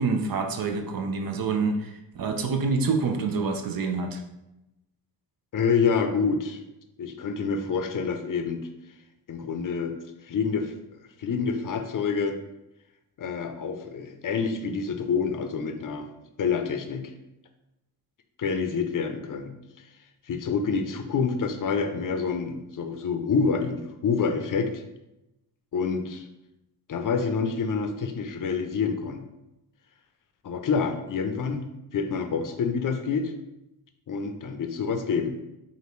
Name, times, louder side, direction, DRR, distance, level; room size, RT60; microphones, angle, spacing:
voice 1, 0.0-4.2, right 4 dB, 60° right, 5 dB, 0.7 m, -27 dB
voice 2, 5.5-6.6 7.0-8.6 9.3-9.9 10.2-10.7 11.2-12.4 13.2-16.1 16.4-17.1 18.4-19.5 20.3-24.8 25.7-26.3 26.9-29.2 30.4-33.3 34.1-35.4, left 5 dB, 50° left, 6 dB, 0.6 m, -27 dB
5.0 x 2.6 x 3.0 m, 0.92 s
cardioid pair, 70°, 40 cm